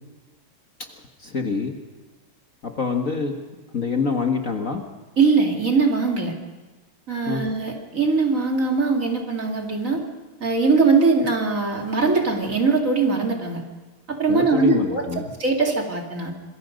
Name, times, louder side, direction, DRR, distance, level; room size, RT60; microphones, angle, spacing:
voice 1, 0.9-1.7 2.6-3.3 3.7-4.8 7.3-7.4 14.3-15.3, left 4 dB, 40° left, 3 dB, 1.8 m, -26 dB
voice 2, 5.2-6.3 7.1-10.0 10.4-13.6 14.1-15.0 15.4-16.3, right 4 dB, 40° right, 1 dB, 2.9 m, -21 dB
26.5 x 21.5 x 5.3 m, 1.3 s
omnidirectional pair, 2.3 m